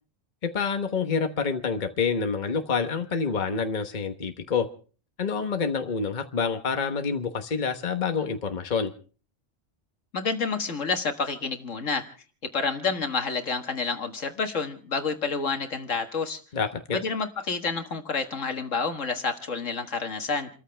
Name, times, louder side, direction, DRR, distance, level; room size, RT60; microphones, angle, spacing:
voice 1, 0.4-4.7 5.2-8.9 16.5-17.0, left 5 dB, 40° left, 6 dB, 1.3 m, -27 dB
voice 2, 10.1-12.1 12.5-16.4 16.9-20.5, left 4 dB, 75° left, 6 dB, 1.9 m, -29 dB
29.0 x 14.0 x 3.4 m, 0.38 s
omnidirectional pair, 1.3 m